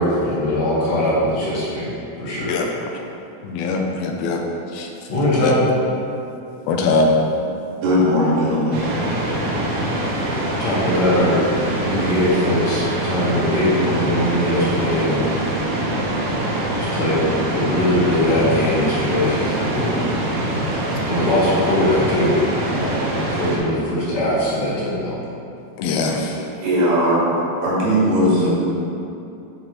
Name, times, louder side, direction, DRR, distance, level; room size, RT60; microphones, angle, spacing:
voice 1, 0.0-1.9 2.2-2.6 5.1-5.7 9.6-10.1 10.5-11.4 11.8-15.2 16.7-17.2 17.5-19.8 21.1-23.0 23.3-25.2, left 1 dB, 60° left, -7 dB, 2.0 m, -21 dB
voice 2, 3.4-4.4 4.7-4.9 5.4-5.6 6.7-7.1 25.8-26.4, left 3 dB, 85° left, 2 dB, 2.5 m, -21 dB
voice 3, 7.8-9.0 26.6-27.2 27.6-28.5, equal, 85° right, -7 dB, 3.7 m, -18 dB
sound 1, 8.7-23.6, right 1 dB, 65° right, 2.1 m, -24 dB
9.4 x 5.2 x 3.0 m, 2.7 s
omnidirectional pair, 4.4 m